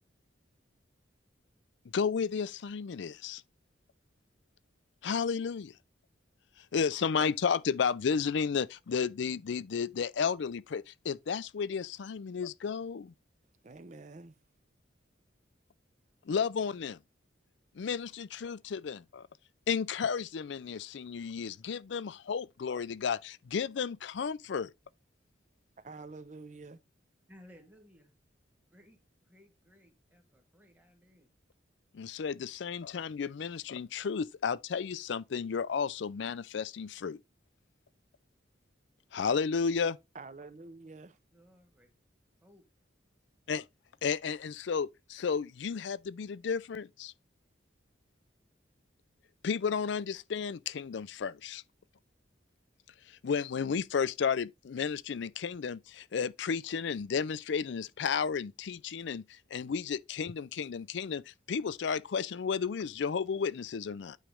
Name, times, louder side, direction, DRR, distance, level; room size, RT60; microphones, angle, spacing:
voice 1, 1.9-3.4 5.0-5.7 6.7-13.1 16.3-17.0 17.8-19.3 19.7-24.7 31.9-37.2 39.1-40.0 43.5-43.6 44.0-47.1 49.4-51.6 53.1-64.2, left 6 dB, 70° left, 0.4 m, -33 dB
voice 2, 13.6-14.3 25.8-26.8 40.1-41.2, right 3 dB, 40° right, 0.6 m, -47 dB
voice 3, 27.3-28.1 28.7-29.0 29.3-31.3 41.3-41.9 42.4-42.7, left 1 dB, 10° right, 1.6 m, -59 dB
9.0 x 3.2 x 4.9 m
head